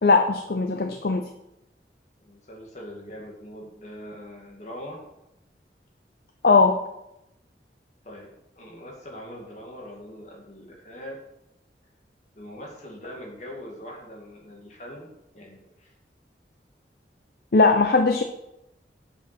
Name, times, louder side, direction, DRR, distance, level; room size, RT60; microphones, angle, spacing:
voice 1, 0.0-1.2 6.4-6.8 17.5-18.2, left 3 dB, 55° left, 6 dB, 0.5 m, -19 dB
voice 2, 2.2-5.0 8.0-8.3 8.6-11.2 12.4-15.1 15.3-15.9, equal, 40° left, -1 dB, 2.1 m, -42 dB
7.2 x 5.5 x 6.0 m, 0.88 s
head